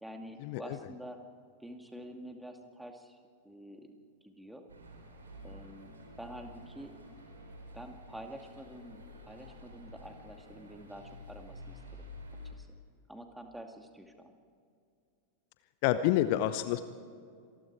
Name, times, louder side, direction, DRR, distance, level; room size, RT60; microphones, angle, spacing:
voice 1, 0.0-1.2 1.6-3.2 3.4-4.0 4.2-4.6 5.4-6.9 7.7-12.0 12.4-12.7 13.1-14.3, right 1 dB, 5° right, 4 dB, 2.3 m, -48 dB
sound 1, 4.7-12.5, left 1 dB, 70° right, 4.6 m, -50 dB
voice 2, 15.8-16.8, left 13 dB, 45° left, 12 dB, 0.8 m, -27 dB
27.0 x 20.5 x 4.8 m, 2.3 s
figure-of-eight pair, 90°, 0 cm